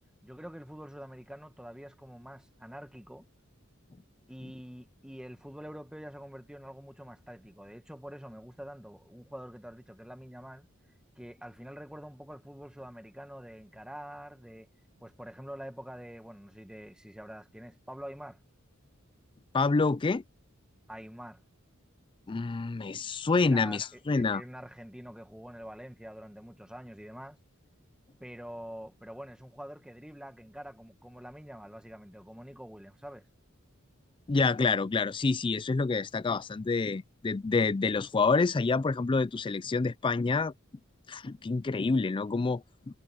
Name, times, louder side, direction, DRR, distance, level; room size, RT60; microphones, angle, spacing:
voice 1, 0.2-3.3 4.3-10.7 11.2-14.7 15.0-18.4 20.9-21.4 23.4-23.8 24.1-27.4 28.2-33.3, equal, 5° right, 1.3 m, -46 dB
voice 2, 19.5-20.2 22.3-24.4 34.3-40.5 41.1-42.6, left 4 dB, 25° left, 0.4 m, -27 dB
head